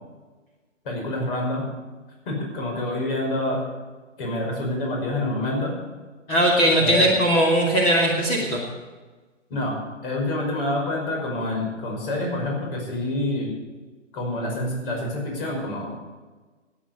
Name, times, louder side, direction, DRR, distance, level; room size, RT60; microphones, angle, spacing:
voice 1, 0.8-1.7 2.3-3.7 4.2-5.7 6.8-7.1 9.5-13.6 14.1-15.9, left 1 dB, 45° left, 0 dB, 5.7 m, -27 dB
voice 2, 6.3-8.6, right 1 dB, 25° left, -2 dB, 2.5 m, -19 dB
16.5 x 9.5 x 6.8 m, 1.3 s
figure-of-eight pair, 135°, 38 cm